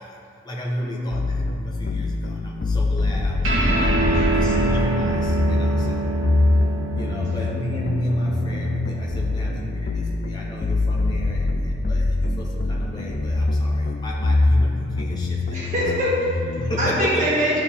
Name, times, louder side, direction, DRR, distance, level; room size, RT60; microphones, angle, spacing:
voice 1, 0.0-4.0 4.3-6.1 6.9-15.6 16.0-16.1 16.6-17.2, equal, 20° left, -4 dB, 1.0 m, -32 dB
sound 1, 1.1-17.1, left 2 dB, 50° left, 0.4 m, -24 dB
sound 2, 3.4-10.2, right 2 dB, 75° right, 1.4 m, -25 dB
voice 2, 15.5-16.4 16.8-17.6, equal, 40° right, -8 dB, 1.9 m, -23 dB
11.5 x 4.6 x 3.5 m, 2.7 s
head